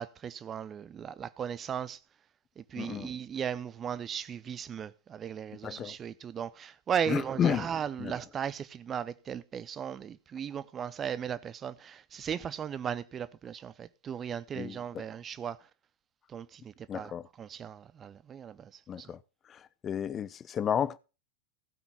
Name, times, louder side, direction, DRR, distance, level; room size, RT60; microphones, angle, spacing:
voice 1, 0.0-2.0 2.6-15.6 16.3-19.1, right 8 dB, 25° right, 0.6 m, -37 dB
voice 2, 2.8-3.1 5.6-5.9 7.1-7.7 8.0-8.1 14.6-15.0 16.9-17.2 18.9-19.2 19.8-21.0, left 9 dB, 25° left, 0.6 m, -31 dB
16.0 x 6.0 x 5.5 m
figure-of-eight pair, 90°, 0 cm